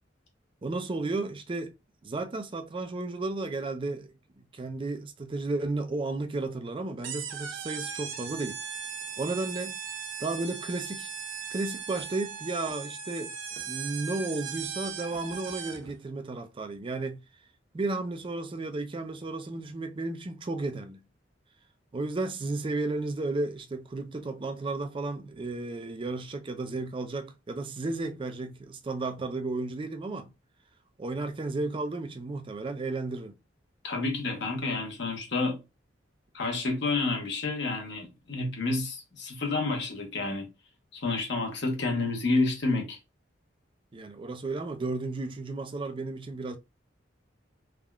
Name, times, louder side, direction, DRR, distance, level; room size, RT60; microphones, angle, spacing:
voice 1, 0.6-1.7 2.0-4.1 4.4-8.6 9.2-9.8 10.2-11.1 11.5-13.3 13.6-17.2 17.7-21.0 21.9-30.3 31.0-33.4 43.9-46.6, right 2 dB, 25° right, 0.4 m, -33 dB
sound 1, 7.0-15.9, right 7 dB, 80° right, 0.6 m, -38 dB
voice 2, 33.8-35.6 36.3-40.5 40.9-43.0, left 3 dB, 65° left, 1.0 m, -29 dB
3.5 x 2.3 x 2.2 m
head